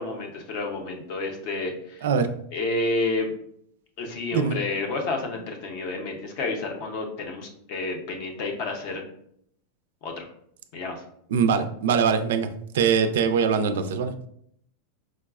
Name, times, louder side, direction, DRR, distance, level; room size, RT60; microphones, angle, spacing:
voice 1, 0.0-2.1 2.5-3.3 4.0-9.0 10.0-10.3 10.7-11.0, left 2 dB, 40° left, 3 dB, 0.6 m, -30 dB
voice 2, 11.3-12.5 12.7-14.1, right 6 dB, 75° right, 10 dB, 0.3 m, -22 dB
4.6 x 2.1 x 2.3 m, 0.69 s
supercardioid pair, 175°, 0 cm